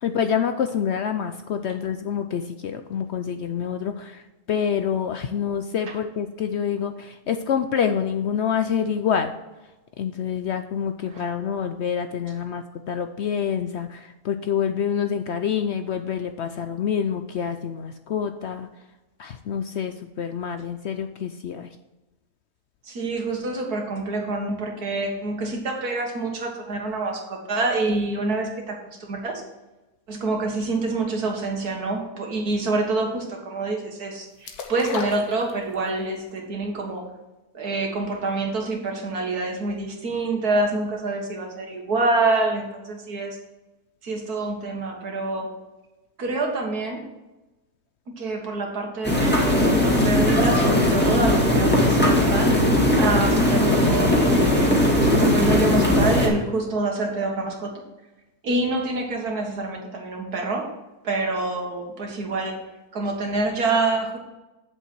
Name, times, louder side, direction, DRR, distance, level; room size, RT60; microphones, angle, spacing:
voice 1, 0.0-4.2 4.5-9.3 10.0-18.7 19.2-21.7, left 7 dB, 65° left, 8 dB, 0.7 m, -27 dB
voice 2, 22.8-29.4 30.1-37.1 37.5-43.4 44.0-45.5 46.2-47.0 48.1-52.5 53.0-57.8 58.4-60.7 61.0-62.6 62.9-64.2, right 2 dB, 90° right, 1 dB, 2.2 m, -26 dB
sound 1, 34.4-36.0 36.4-36.5, left 6 dB, 85° left, 1.6 m, -33 dB
sound 2, 49.0-56.3, left 1 dB, 5° left, 2.0 m, -19 dB
8.4 x 7.1 x 4.6 m, 1.1 s
omnidirectional pair, 1.6 m